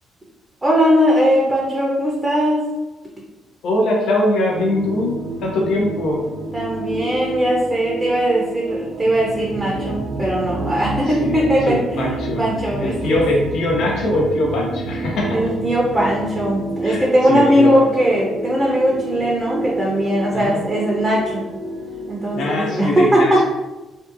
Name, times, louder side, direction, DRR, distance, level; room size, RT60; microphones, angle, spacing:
voice 1, 0.6-2.6 6.5-12.0 12.4-13.2 15.3-21.4 22.1-23.4, equal, 15° right, -3 dB, 0.6 m, -19 dB
voice 2, 3.6-6.2 11.2-12.4 12.8-15.5 16.8-17.9 20.3-20.6 22.3-23.4, left 1 dB, 75° left, -1 dB, 0.7 m, -22 dB
sound 1, 4.5-22.7, right 2 dB, 75° right, 0.4 m, -29 dB
2.6 x 2.3 x 2.5 m, 1.1 s
cardioid pair, 90°, 0 cm